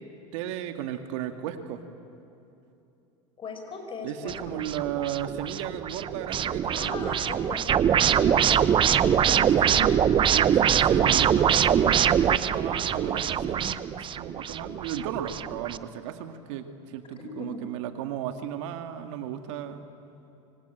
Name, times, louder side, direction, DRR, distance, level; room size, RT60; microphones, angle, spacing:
voice 1, 0.3-1.8 4.0-7.2 9.6-9.9 10.3-19.8, right 10 dB, 75° right, 7 dB, 2.1 m, -35 dB
voice 2, 3.4-4.6 6.8-7.6 8.1-10.0 17.2-17.6, left 4 dB, 35° left, 5 dB, 5.8 m, -39 dB
sound 1, 4.3-15.8, right 9 dB, 30° right, 0.8 m, -23 dB
25.0 x 25.0 x 9.3 m, 2.8 s
supercardioid pair, 105°, 16 cm